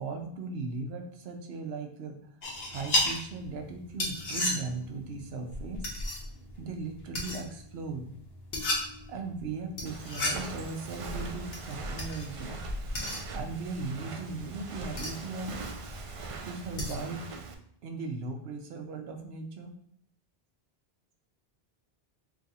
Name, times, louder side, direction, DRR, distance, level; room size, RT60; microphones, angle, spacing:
voice 1, 0.0-2.2 2.7-5.9 6.6-8.1 9.1-12.5 13.3-15.5 16.5-17.3 17.8-19.7, right 3 dB, 80° right, 4 dB, 0.9 m, -38 dB
sound 1, 2.4-17.2, left 1 dB, 75° left, 1.2 m, -36 dB
Walk footsteps, 9.9-17.5, right 2 dB, 60° right, 0.3 m, -40 dB
3.3 x 2.5 x 4.0 m, 0.68 s
omnidirectional pair, 1.0 m